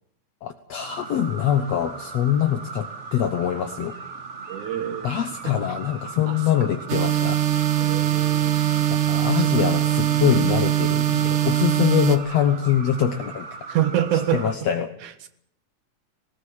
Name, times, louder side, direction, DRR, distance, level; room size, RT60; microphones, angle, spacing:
voice 1, 0.4-3.9 5.0-7.4 8.9-13.5 14.3-14.9, left 10 dB, 65° left, 8 dB, 2.1 m, -24 dB
sound 1, 0.8-14.5, right 4 dB, 50° right, 0.8 m, -38 dB
voice 2, 4.5-5.1 5.4-5.5 6.3-6.7 7.8-8.6 9.0-9.7 10.1-10.6 13.7-14.7 15.0-15.3, right 11 dB, 75° right, 11 dB, 2.9 m, -28 dB
sound 2, 6.9-12.2, right 12 dB, 90° right, 3.1 m, -21 dB
19.5 x 18.5 x 8.9 m, 0.71 s
omnidirectional pair, 3.6 m